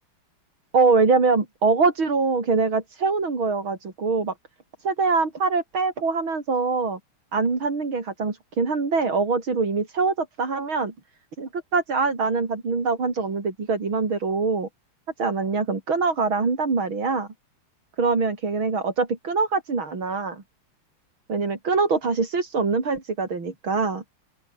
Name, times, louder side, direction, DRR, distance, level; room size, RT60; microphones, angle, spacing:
voice 1, 0.7-4.3 4.8-7.0 7.3-10.9 11.4-14.7 15.2-17.3 18.0-20.4 21.3-24.0, right 4 dB, 65° right, 4.8 m, -23 dB
open air
omnidirectional pair, 2.4 m